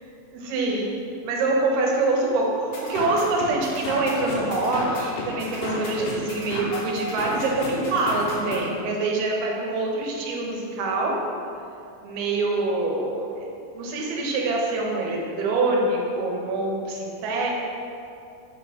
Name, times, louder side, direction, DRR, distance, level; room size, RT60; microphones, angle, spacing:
voice 1, 0.3-1.0 1.2-11.2 12.0-13.5 13.7-17.5, right 2 dB, 90° right, -1 dB, 2.8 m, -25 dB
sound 1, 2.7-8.6, left 2 dB, 75° left, 2.6 m, -32 dB
8.5 x 3.0 x 4.8 m, 2.5 s
omnidirectional pair, 4.2 m